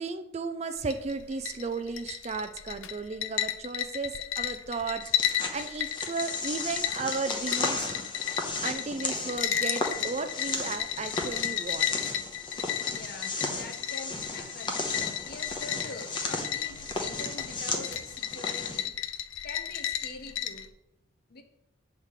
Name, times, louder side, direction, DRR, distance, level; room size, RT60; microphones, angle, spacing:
voice 1, 0.0-5.0 5.5-7.9 8.6-11.9, right 4 dB, 30° right, 8 dB, 0.4 m, -34 dB
sound 1, 0.8-20.7, left 10 dB, 70° left, 0.5 m, -34 dB
sound 2, 5.0-18.8, left 3 dB, 25° left, 0.8 m, -35 dB
voice 2, 12.9-15.0 15.2-19.0 19.4-20.7 21.3-21.4, left 3 dB, 50° left, 6 dB, 0.9 m, -44 dB
8.1 x 3.6 x 6.4 m, 0.87 s
head